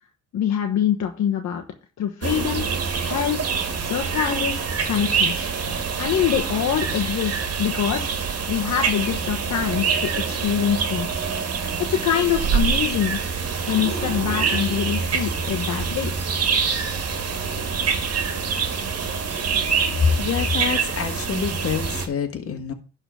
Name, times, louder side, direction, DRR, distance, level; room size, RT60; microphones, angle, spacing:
voice 1, 0.3-1.6 2.0-2.7 3.0-3.4 3.8-5.5 6.0-8.1 8.5-11.1 11.8-13.2 13.7-16.1, left 9 dB, 65° left, 1.2 m, -24 dB
sound 1, 2.2-22.1, right 5 dB, 55° right, 1.9 m, -25 dB
voice 2, 20.0-22.7, left 6 dB, 50° left, 1.7 m, -25 dB
11.0 x 4.0 x 6.3 m
cardioid pair, 90°, 30 cm